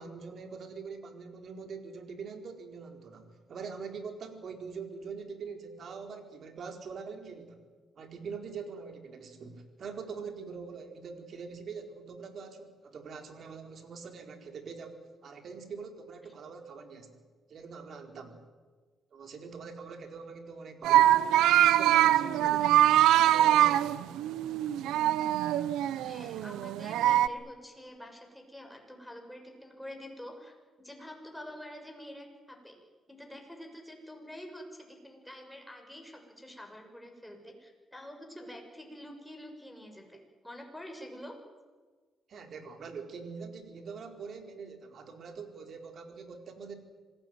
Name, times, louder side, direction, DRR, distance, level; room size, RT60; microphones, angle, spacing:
voice 1, 0.0-7.6 8.0-17.2 17.5-18.4 19.1-21.2 21.6-22.8 23.2-24.0 42.3-46.7, right 5 dB, 55° right, 5 dB, 4.4 m, -43 dB
sound 1, 20.8-27.3, right 12 dB, 90° right, 0.9 m, -24 dB
voice 2, 26.0-32.8 33.1-40.2 40.4-41.3, equal, 5° left, 1 dB, 6.9 m, -47 dB
26.0 x 17.5 x 9.4 m, 1.4 s
cardioid pair, 90°, 0 cm